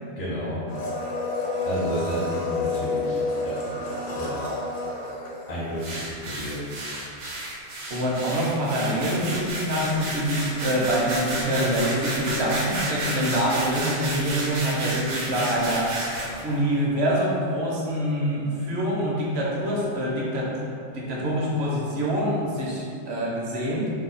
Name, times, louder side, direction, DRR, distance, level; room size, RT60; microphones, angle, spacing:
voice 1, 0.2-0.6 1.6-4.5 5.5-6.7, equal, 55° left, -7 dB, 0.6 m, -31 dB
Domestic sounds home sounds, 0.7-5.9 6.2-6.3, left 3 dB, 70° left, 1.0 m, -29 dB
sound 1, 5.8-16.4, right 1 dB, 85° right, 0.4 m, -32 dB
voice 2, 7.9-20.7 20.9-23.9, equal, 60° right, -5 dB, 0.9 m, -25 dB
2.8 x 2.1 x 3.9 m, 2.5 s
omnidirectional pair, 1.3 m